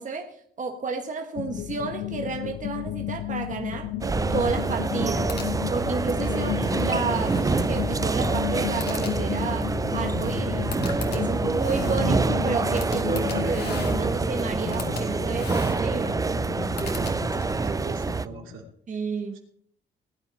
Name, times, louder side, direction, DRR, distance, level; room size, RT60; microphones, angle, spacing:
voice 1, 0.0-5.3 5.7-10.7 11.1-16.2 18.9-19.4, right 4 dB, 40° right, 1.5 m, -31 dB
sound 1, 1.4-18.7, left 12 dB, 75° left, 0.8 m, -34 dB
sound 2, 4.0-18.3, right 4 dB, 15° right, 0.5 m, -26 dB
sound 3, 4.9-17.9, left 3 dB, 55° left, 2.8 m, -37 dB
voice 2, 16.8-17.2 17.6-18.6, right 5 dB, 80° right, 2.9 m, -40 dB
19.0 x 9.0 x 4.4 m
cardioid pair, 90°, 20 cm